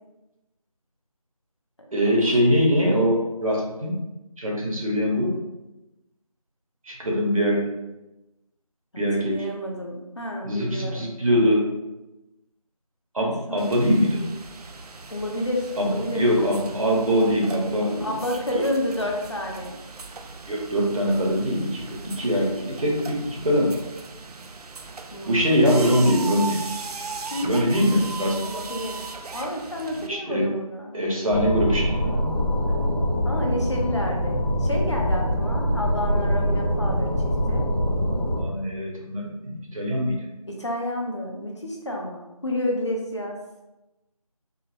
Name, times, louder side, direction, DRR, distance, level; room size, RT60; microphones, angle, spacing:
voice 1, 1.9-4.0 4.4-5.3 6.9-7.7 9.0-9.5 10.4-11.7 13.1-14.3 15.8-18.1 18.5-18.6 20.5-23.7 25.3-26.6 27.4-28.4 30.1-30.5 30.9-32.2 38.4-40.1, equal, 65° right, -1 dB, 0.9 m, -22 dB
voice 2, 7.0-7.5 8.9-11.1 13.5-13.8 15.1-16.3 18.0-19.8 25.1-25.6 27.3-28.0 28.4-29.0 29.3-31.0 33.2-37.7 40.5-43.4, left 1 dB, 50° left, 0 dB, 0.5 m, -30 dB
sound 1, 13.6-30.1, right 4 dB, 85° right, 0.4 m, -38 dB
sound 2, 31.3-38.4, equal, 40° right, 0.7 m, -24 dB
3.8 x 2.0 x 2.7 m, 0.98 s
figure-of-eight pair, 175°, 19 cm